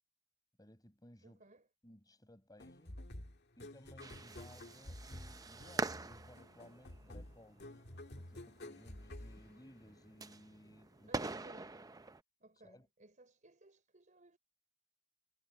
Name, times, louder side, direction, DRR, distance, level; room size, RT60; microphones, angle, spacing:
voice 1, 0.6-1.4 1.8-3.0 3.6-7.8 8.1-11.2 12.6-12.9, left 1 dB, 20° left, 6.6 m, -60 dB
voice 2, 1.2-1.7 11.1-11.8 12.4-14.4, right 2 dB, 40° right, 4.8 m, -61 dB
sound 1, 2.6-10.2, left 1 dB, 55° left, 2.1 m, -51 dB
sound 2, 4.0-12.2, right 3 dB, 20° right, 0.6 m, -45 dB
head